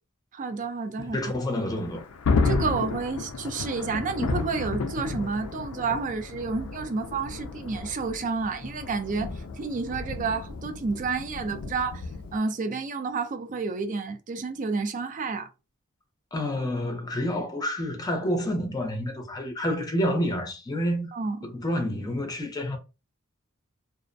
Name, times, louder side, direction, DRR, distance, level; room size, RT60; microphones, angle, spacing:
voice 1, 0.3-1.2 2.4-12.0 12.3-15.5 21.1-21.4, right 4 dB, 40° right, 0.4 m, -30 dB
voice 2, 1.0-2.0 16.3-21.1 21.4-22.8, equal, 20° left, 0.5 m, -28 dB
Thunder, 1.6-12.4, left 4 dB, 90° left, 0.4 m, -32 dB
2.4 x 2.0 x 2.5 m
head